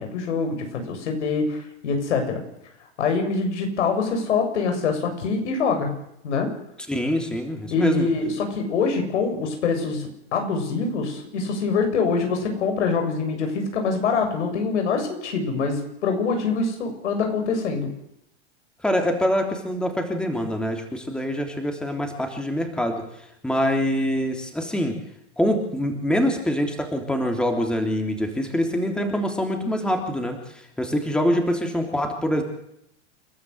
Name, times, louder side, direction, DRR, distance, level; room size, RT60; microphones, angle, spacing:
voice 1, 0.0-2.4 3.0-5.9 6.2-6.5 7.7-17.9, left 4 dB, 85° left, 4 dB, 7.5 m, -24 dB
voice 2, 6.9-8.1 18.8-25.0 25.4-32.4, equal, 5° left, 4 dB, 3.2 m, -25 dB
29.5 x 12.5 x 8.0 m, 0.78 s
supercardioid pair, 140°, 34 cm